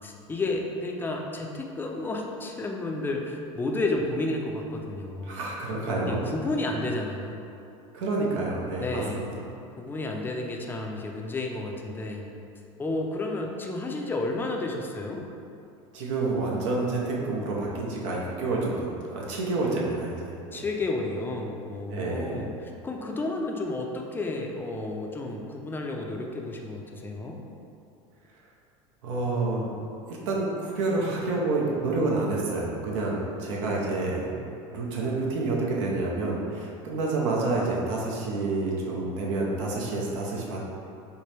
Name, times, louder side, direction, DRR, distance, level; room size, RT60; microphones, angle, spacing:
voice 1, 0.0-5.4 6.1-7.4 8.8-9.2 9.8-12.3 12.8-15.3 20.5-27.4, left 2 dB, 15° left, 1 dB, 0.4 m, -31 dB
voice 2, 5.3-6.3 7.9-9.3 15.9-20.7 21.9-22.4 29.0-29.7 30.3-34.3 34.7-40.6, right 3 dB, 75° right, -4 dB, 0.8 m, -28 dB
4.4 x 2.2 x 3.2 m, 2.7 s
hypercardioid pair, 95°, 16 cm